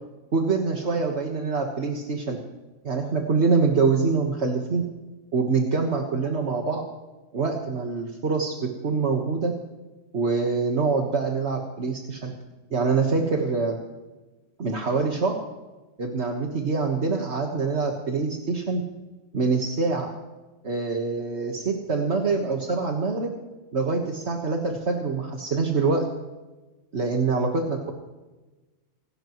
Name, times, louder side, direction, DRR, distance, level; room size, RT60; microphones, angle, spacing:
voice 1, 0.3-2.4 2.8-4.8 5.3-6.8 7.3-9.5 10.1-12.3 12.7-13.8 14.6-15.4 16.0-18.8 19.3-20.1 20.6-23.3 23.7-26.0 26.9-27.9, right 4 dB, 60° right, 1 dB, 1.8 m, -25 dB
26.0 x 13.0 x 3.1 m, 1.2 s
omnidirectional pair, 1.3 m